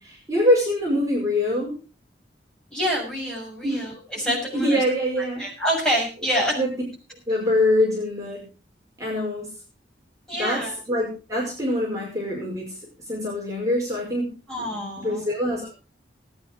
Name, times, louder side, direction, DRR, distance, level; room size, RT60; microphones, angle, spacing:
voice 1, 0.0-1.7 3.6-3.9 4.3-5.5 6.6-6.7 7.3-8.4 9.0-9.5 10.3-12.8 13.1-14.3 14.6-15.7, left 1 dB, 20° right, -3 dB, 5.3 m, -24 dB
voice 2, 2.7-4.8 5.4-6.5 10.3-10.7 14.5-15.2, equal, 5° left, -4 dB, 6.7 m, -27 dB
19.5 x 9.8 x 4.5 m, 0.34 s
head